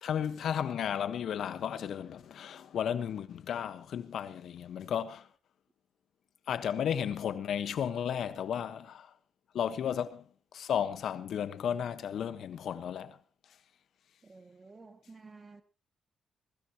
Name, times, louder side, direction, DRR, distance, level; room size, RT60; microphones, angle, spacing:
voice 1, 0.0-5.3 6.5-9.1 9.5-10.2 10.5-13.2, left 8 dB, 70° left, 1.3 m, -34 dB
voice 2, 14.2-15.6, right 3 dB, 25° right, 2.2 m, -52 dB
21.5 x 16.5 x 3.0 m
cardioid pair, 125°, 0 cm